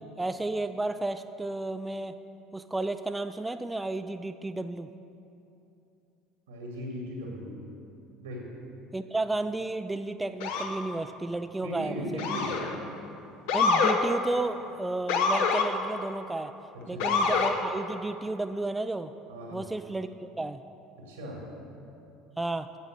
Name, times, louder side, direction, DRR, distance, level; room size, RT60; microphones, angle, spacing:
voice 1, 0.2-2.1 2.5-4.9 8.9-12.3 13.5-16.5 16.9-19.1 19.5-20.6 22.4-22.7, right 2 dB, 15° right, 9 dB, 0.3 m, -32 dB
voice 2, 6.5-7.5 8.2-8.4 11.6-12.5 16.9-17.2 19.3-19.6 21.0-21.4, equal, 85° right, -2 dB, 2.2 m, -37 dB
Motor vehicle (road) / Siren, 10.4-10.8 12.2-12.7 13.5-14.0 15.1-15.7 17.0-17.5, left 5 dB, 70° left, 0.9 m, -25 dB
8.3 x 7.4 x 6.5 m, 2.8 s
hypercardioid pair, 70°, 0 cm